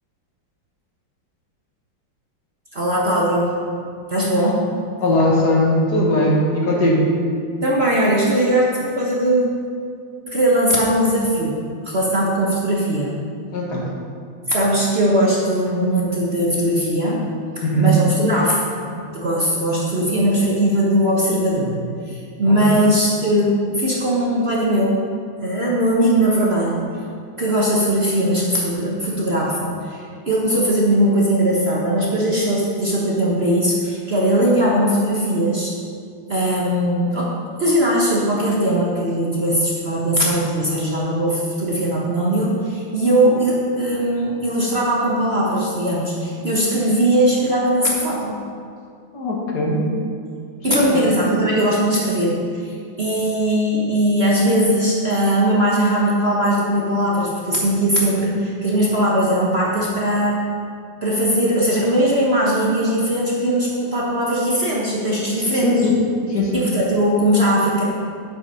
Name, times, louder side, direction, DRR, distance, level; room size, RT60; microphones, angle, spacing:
voice 1, 2.7-3.6 4.1-4.7 7.6-9.5 10.3-11.5 11.8-13.1 14.5-17.2 17.6-18.6 19.0-21.7 22.0-25.0 25.4-26.8 27.4-35.7 36.3-37.3 37.6-48.4 50.6-60.4 61.0-65.8 66.5-67.8, right 1 dB, 35° right, -4 dB, 1.2 m, -19 dB
voice 2, 5.0-7.1 13.5-13.9 17.6-18.0 22.5-22.8 49.1-49.9 50.7-51.1 65.5-66.0 66.3-66.6, left 1 dB, 55° left, -2 dB, 2.0 m, -19 dB
8.3 x 7.9 x 5.5 m, 2.3 s
omnidirectional pair, 2.1 m